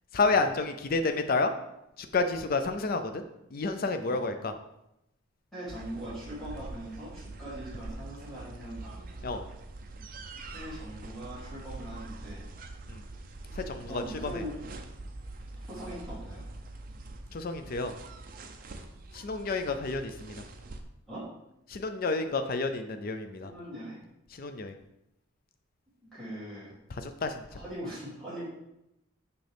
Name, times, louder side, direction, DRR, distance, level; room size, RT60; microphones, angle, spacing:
voice 1, 0.1-1.5 2.0-3.2 3.5-4.5 9.2-9.4 12.9-13.0 13.5-14.0 14.3-14.4 17.3-17.9 19.1-20.4 21.7-23.5 24.3-24.7 27.0-27.4, left 3 dB, 45° left, 8 dB, 0.4 m, -30 dB
voice 2, 5.5-9.0 10.5-12.5 13.9-14.6 15.7-16.4 18.5-18.7 21.1-21.2 23.4-24.0 26.1-26.7 27.5-28.4, right 1 dB, ahead, -12 dB, 2.7 m, -41 dB
sound 1, 5.7-20.8, right 2 dB, 40° right, 0.5 m, -44 dB
6.3 x 5.6 x 3.4 m, 0.85 s
head